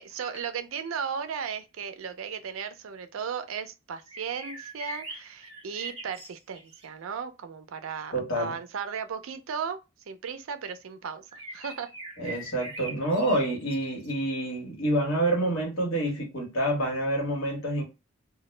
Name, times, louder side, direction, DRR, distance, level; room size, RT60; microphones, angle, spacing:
voice 1, 0.0-9.8 10.1-11.9, right 6 dB, 90° right, 0.4 m, -36 dB
sound 1, 4.1-6.9 11.3-14.4, right 1 dB, 30° right, 0.7 m, -42 dB
voice 2, 8.1-8.5 12.2-17.8, right 1 dB, 85° left, 1.1 m, -27 dB
2.2 x 2.0 x 3.1 m
head